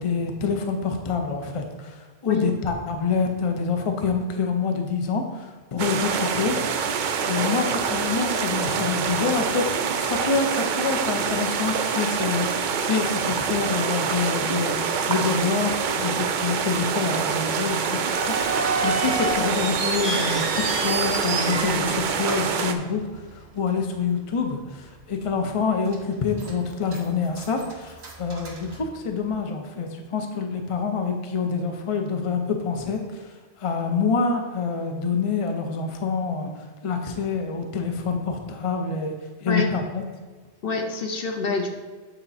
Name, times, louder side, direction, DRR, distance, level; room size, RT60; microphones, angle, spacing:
voice 1, 0.0-6.8 7.2-36.5 36.8-39.1 39.4-40.0, left 5 dB, 35° left, 4 dB, 0.7 m, -27 dB
sound 1, 5.8-22.7, right 6 dB, 55° right, 0.6 m, -26 dB
sound 2, 18.1-23.4 23.7-23.8 24.5-24.8 25.2-25.3 25.9-26.5 26.9-29.3, right 3 dB, 75° right, 1.5 m, -30 dB
voice 2, 40.6-41.7, left 4 dB, 60° left, 4 dB, 0.9 m, -26 dB
8.3 x 4.3 x 4.2 m, 1.4 s
omnidirectional pair, 1.1 m